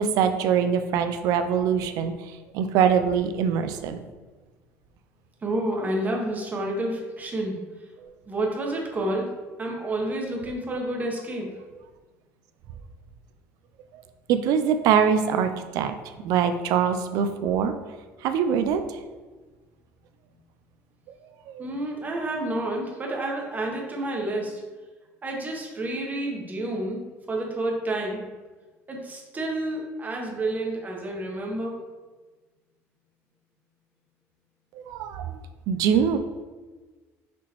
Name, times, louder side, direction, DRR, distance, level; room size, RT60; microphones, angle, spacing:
voice 1, 0.0-4.1 8.0-8.1 13.9-14.0 14.3-15.9 16.2-17.7 18.2-19.0 21.5-21.7 34.7-35.4 35.7-36.2, right 7 dB, 70° right, 8 dB, 0.4 m, -23 dB
voice 2, 5.4-7.6 8.3-9.3 9.6-11.5 21.6-24.6 25.2-27.0 27.3-28.2 28.9-31.8, right 1 dB, 25° right, 0 dB, 1.1 m, -29 dB
6.0 x 2.9 x 3.0 m, 1.3 s
supercardioid pair, 100°, 6 cm